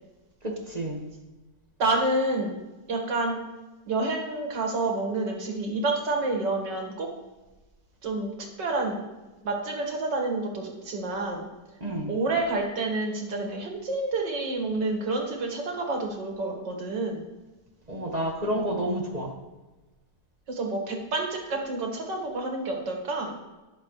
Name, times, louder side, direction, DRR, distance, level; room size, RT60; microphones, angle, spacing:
voice 1, 0.4-1.0 11.8-12.1 17.9-19.3, right 1 dB, 25° right, 0 dB, 1.6 m, -29 dB
voice 2, 1.8-2.5 2.9-3.4 3.9-7.1 8.0-8.3 8.6-9.0 9.4-11.5 12.1-17.2 20.5-23.4, right 2 dB, 90° right, 1 dB, 2.5 m, -28 dB
20.0 x 6.9 x 3.2 m, 1.1 s
omnidirectional pair, 1.8 m